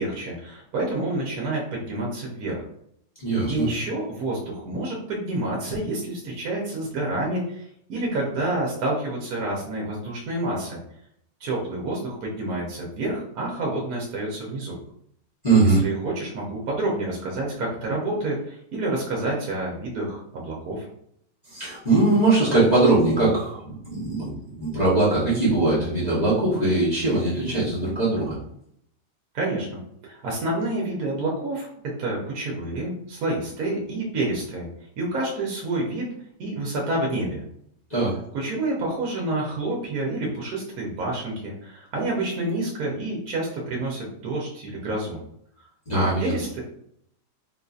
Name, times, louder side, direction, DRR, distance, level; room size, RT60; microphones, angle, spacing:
voice 1, 0.0-2.6 3.5-7.6 7.9-10.8 11.4-14.8 15.6-20.9 29.3-31.7 32.0-34.7 35.0-36.1 36.4-37.4 38.3-45.2 45.9-46.6, right 2 dB, 65° right, -3 dB, 1.1 m, -28 dB
voice 2, 3.2-3.7 15.4-15.8 21.5-28.4 37.9-38.1 45.9-46.3, right 2 dB, 30° left, -9 dB, 0.9 m, -21 dB
3.8 x 2.6 x 2.4 m, 0.72 s
omnidirectional pair, 1.9 m